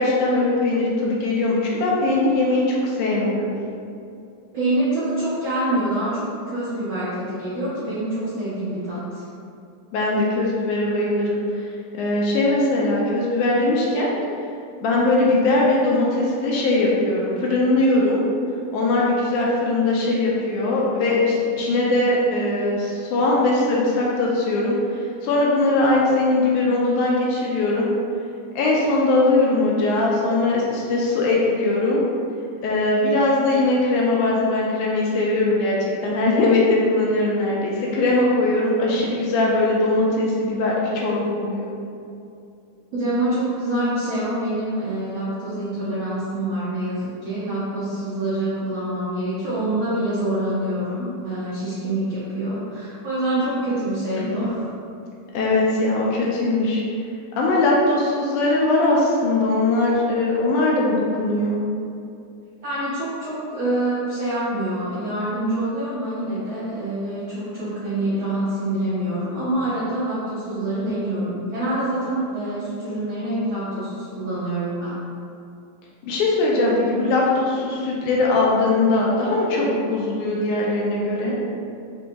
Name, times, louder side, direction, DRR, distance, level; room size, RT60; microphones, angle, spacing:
voice 1, 0.0-3.5 9.9-11.7 11.9-14.1 14.8-18.2 18.7-27.9 28.6-32.0 32.6-41.7 54.2-54.3 55.3-56.8 57.4-61.6 76.0-81.4, left 2 dB, 80° left, -4 dB, 2.0 m, -20 dB
voice 2, 4.5-9.2 42.9-54.7 62.6-74.9, right 1 dB, 80° right, -11 dB, 1.1 m, -26 dB
5.2 x 2.8 x 3.4 m, 2.5 s
omnidirectional pair, 3.7 m